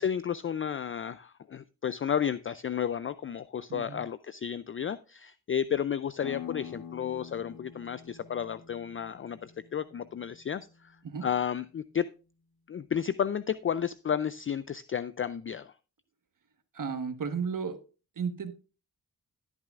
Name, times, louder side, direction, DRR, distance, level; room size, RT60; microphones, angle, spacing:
voice 1, 0.0-11.0 11.2-12.1 12.7-15.7, left 8 dB, 35° left, 15 dB, 0.4 m, -32 dB
sound 1, 6.2-11.6, left 9 dB, 80° left, 1.6 m, -46 dB
voice 2, 16.7-17.8 18.2-18.5, right 6 dB, 60° right, 8 dB, 1.4 m, -33 dB
13.5 x 8.9 x 2.5 m, 0.33 s
cardioid pair, 70°, 36 cm